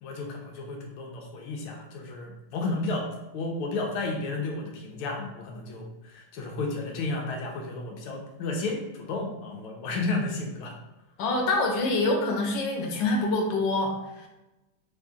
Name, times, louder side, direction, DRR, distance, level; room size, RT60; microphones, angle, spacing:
voice 1, 0.0-3.1 3.3-10.7, left 3 dB, 85° left, 0 dB, 1.5 m, -32 dB
voice 2, 11.2-14.3, left 2 dB, 65° left, 0 dB, 1.4 m, -26 dB
4.3 x 2.7 x 3.5 m, 0.99 s
omnidirectional pair, 2.3 m